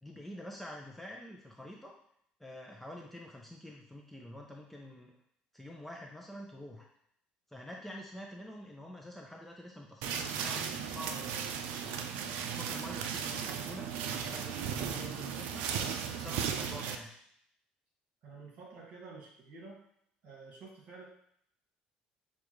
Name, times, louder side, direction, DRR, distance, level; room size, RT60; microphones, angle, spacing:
voice 1, 0.0-1.9 2.4-5.2 5.5-6.9 7.5-11.4 11.8-13.9 14.1-15.6 16.1-17.1, left 1 dB, 5° left, -1 dB, 0.5 m, -47 dB
sound 1, 10.0-17.0, right 7 dB, 85° right, 0.4 m, -36 dB
voice 2, 18.2-19.8 20.2-21.0, right 4 dB, 55° right, -3 dB, 1.9 m, -50 dB
6.9 x 2.4 x 3.1 m, 0.70 s
cardioid pair, 140°, 3 cm